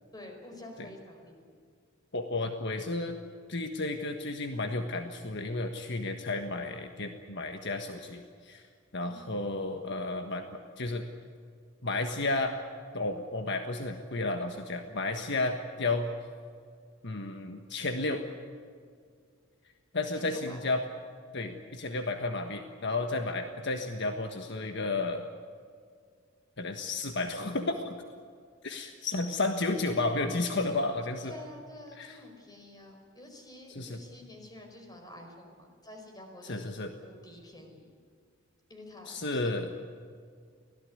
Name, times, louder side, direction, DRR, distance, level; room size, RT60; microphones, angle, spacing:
voice 1, 0.1-1.5 9.0-9.3 20.1-20.6 21.3-21.6 31.2-36.7 37.0-37.9 38.7-39.6, left 1 dB, 20° left, 3 dB, 5.0 m, -48 dB
voice 2, 2.1-3.2 3.5-8.7 8.9-10.4 10.8-11.1 11.8-12.6 12.9-16.1 17.0-18.2 19.9-20.8 21.3-25.3 26.6-28.0 28.6-31.3 32.0-32.2 33.7-34.0 36.4-36.9 39.1-39.7, left 2 dB, 60° left, 5 dB, 1.5 m, -32 dB
25.0 x 17.5 x 9.6 m, 2.1 s
head